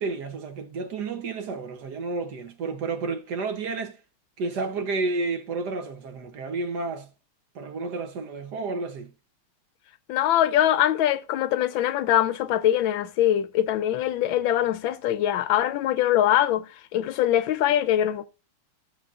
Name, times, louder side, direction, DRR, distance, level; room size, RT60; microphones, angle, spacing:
voice 1, 0.0-4.0 4.4-7.1 7.5-9.1, right 3 dB, 60° right, 1.3 m, -31 dB
voice 2, 10.1-16.7 16.9-18.3, left 12 dB, 75° left, 1.3 m, -23 dB
14.5 x 7.4 x 2.4 m
omnidirectional pair, 2.3 m